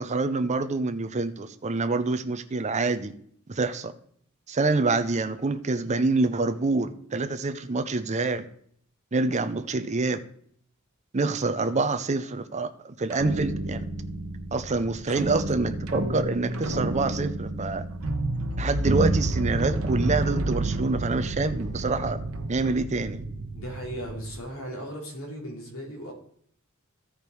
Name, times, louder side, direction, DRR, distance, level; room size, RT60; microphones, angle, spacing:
voice 1, 0.0-3.1 3.5-3.9 4.5-8.4 9.1-10.2 11.1-13.8 14.5-17.8 18.6-22.2 22.5-23.2, right 3 dB, 35° right, 10 dB, 0.6 m, -26 dB
sound 1, 13.1-24.4, right 2 dB, 75° right, 1.0 m, -30 dB
voice 2, 23.5-26.1, equal, 75° left, 0 dB, 3.1 m, -37 dB
14.0 x 5.1 x 4.6 m, 0.63 s
head